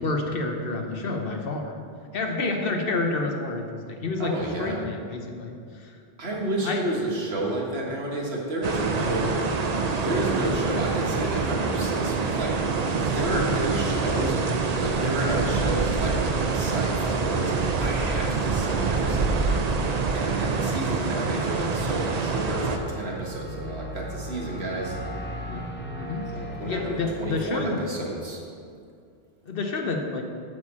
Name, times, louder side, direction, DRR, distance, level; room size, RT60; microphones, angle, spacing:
voice 1, 0.0-1.7 2.1-5.5 5.8-5.9 6.6-6.8 9.2-9.4 20.6-20.7 21.1-21.2 25.5-25.7 26.0-26.2 26.6-27.8 29.5-30.2, left 3 dB, 65° left, 3 dB, 1.0 m, -29 dB
voice 2, 4.2-4.8 6.2-9.3 10.0-14.4 14.8-16.2 16.5-19.6 20.1-25.0 26.3-28.4, right 1 dB, 80° right, -2 dB, 1.7 m, -31 dB
sound 1, 8.6-22.8, right 4 dB, 45° right, 0.6 m, -26 dB
sound 2, 10.3-27.6, equal, 15° left, 0.6 m, -40 dB
9.1 x 4.2 x 7.4 m, 2.3 s
omnidirectional pair, 1.0 m